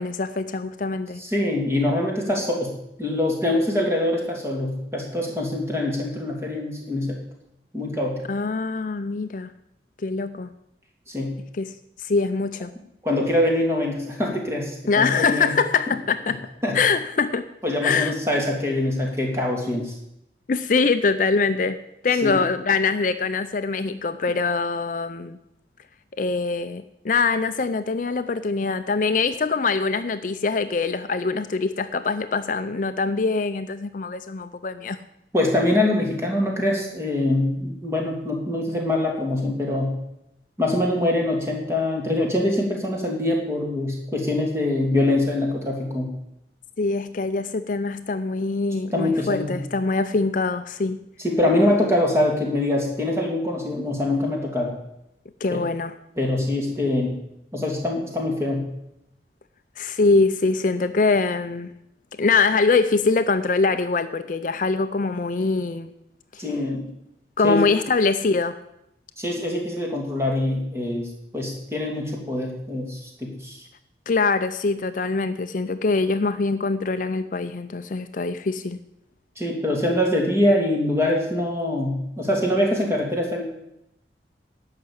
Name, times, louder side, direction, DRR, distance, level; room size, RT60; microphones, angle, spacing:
voice 1, 0.0-1.2 8.3-9.5 10.0-10.5 11.6-12.7 14.9-16.5 16.7-17.5 17.8-18.1 20.5-21.8 22.0-25.4 26.2-35.0 46.8-51.0 55.4-55.9 59.8-61.7 62.2-65.9 66.3-66.4 67.4-68.6 74.1-78.8, left 4 dB, 45° left, 11 dB, 0.5 m, -23 dB
voice 2, 1.2-2.7 3.0-7.1 7.7-8.2 11.1-11.3 13.0-15.5 16.6-16.8 17.6-19.9 22.2-22.4 35.3-39.9 40.6-46.1 48.9-49.6 51.2-54.7 55.5-55.6 56.2-57.2 57.5-58.6 66.4-66.9 67.4-67.6 69.2-71.1 71.3-73.6 79.4-83.4, left 1 dB, 15° right, -1 dB, 2.6 m, -24 dB
12.0 x 5.8 x 8.6 m, 0.82 s
head